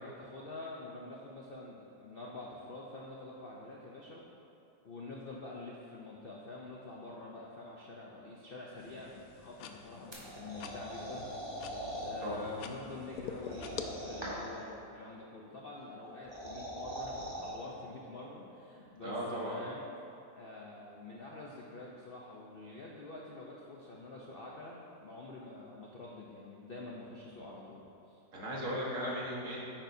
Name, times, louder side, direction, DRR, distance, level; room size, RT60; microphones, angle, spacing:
voice 1, 0.0-4.3 4.8-11.2 12.0-19.8 20.4-28.2, left 2 dB, 50° left, -3 dB, 0.7 m, -47 dB
sound 1, 8.8-13.8, left 7 dB, 70° left, 0.9 m, -47 dB
sound 2, 10.1-12.1 13.4-14.6 16.0-17.5, equal, 15° right, 1.8 m, -42 dB
voice 2, 19.0-19.6 28.3-29.7, equal, 50° right, -5 dB, 1.8 m, -37 dB
9.9 x 8.9 x 2.7 m, 2.7 s
omnidirectional pair, 1.8 m